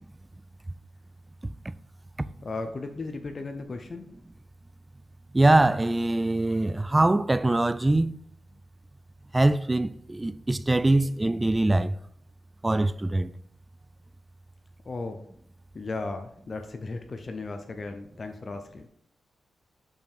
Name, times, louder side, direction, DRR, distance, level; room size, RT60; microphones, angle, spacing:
voice 1, 1.4-1.7 2.2-2.3 5.3-8.1 9.3-12.0 12.6-13.3, right 2 dB, 20° right, 0.3 m, -23 dB
voice 2, 2.4-4.1 14.9-15.3 15.7-18.9, left 3 dB, 40° left, 0.6 m, -36 dB
5.6 x 5.2 x 4.4 m
cardioid pair, 90°, 0 cm